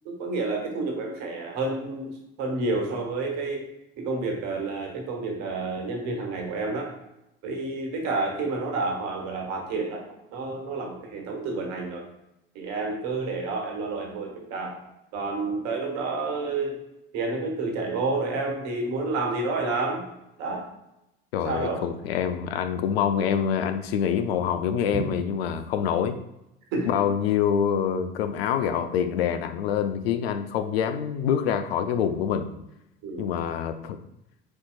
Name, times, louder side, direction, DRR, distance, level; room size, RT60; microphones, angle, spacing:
voice 1, 0.0-3.6 4.0-6.9 7.4-10.0 10.3-12.0 12.5-14.8 15.1-16.8 17.1-20.0 20.4-20.7 21.4-21.8 26.7-26.9 33.0-33.3, right 3 dB, 60° right, 2 dB, 1.2 m, -29 dB
voice 2, 21.3-26.2 26.9-32.5 33.2-34.0, left 8 dB, 80° left, 10 dB, 0.5 m, -26 dB
4.4 x 4.3 x 2.3 m, 0.86 s
hypercardioid pair, 70°, 30 cm